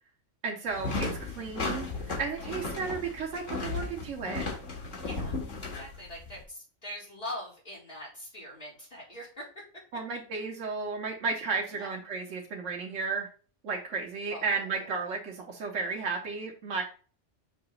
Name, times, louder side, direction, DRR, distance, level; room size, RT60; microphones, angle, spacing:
voice 1, 0.4-1.9 2.2-4.5 9.9-13.3 13.6-16.8, right 4 dB, 85° right, 1 dB, 1.3 m, -33 dB
sound 1, 0.7-6.4, left 3 dB, 80° left, 2.0 m, -35 dB
voice 2, 5.0-5.3 5.6-9.5 11.7-11.9 14.3-14.9, left 1 dB, 45° left, -6 dB, 2.4 m, -42 dB
6.5 x 2.9 x 5.3 m, 0.40 s
omnidirectional pair, 1.2 m